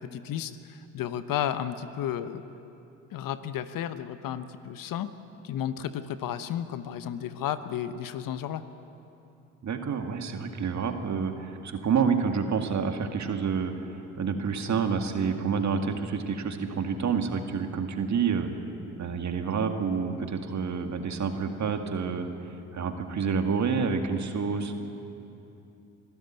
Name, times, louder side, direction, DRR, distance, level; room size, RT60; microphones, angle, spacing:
voice 1, 0.0-2.4 3.1-5.1 5.4-8.7, left 10 dB, 55° left, 12 dB, 1.0 m, -33 dB
voice 2, 9.6-18.5 19.0-22.3 22.7-24.7, right 6 dB, 45° right, 5 dB, 2.1 m, -28 dB
24.5 x 13.0 x 9.0 m, 2.8 s
hypercardioid pair, 60°, 39 cm